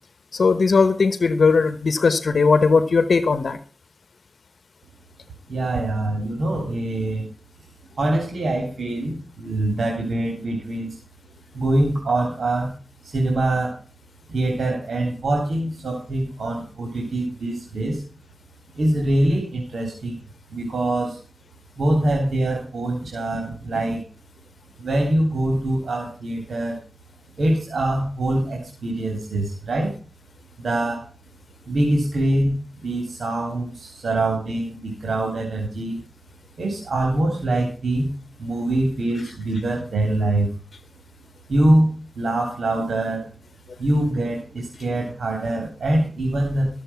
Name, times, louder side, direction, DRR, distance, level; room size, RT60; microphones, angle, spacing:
voice 1, 0.3-3.6, left 4 dB, 75° left, 13 dB, 1.0 m, -18 dB
voice 2, 5.5-7.3 8.0-11.0 11.5-12.7 13.0-13.7 14.3-18.0 18.7-20.1 20.5-21.2 21.8-24.0 24.8-26.8 27.4-29.9 30.6-31.1 31.7-36.0 36.6-38.1 38.4-40.5 41.5-43.3 43.8-46.7, right 1 dB, 80° right, 0 dB, 3.4 m, -24 dB
13.5 x 7.7 x 5.8 m, 0.36 s
cardioid pair, 50°, 0 cm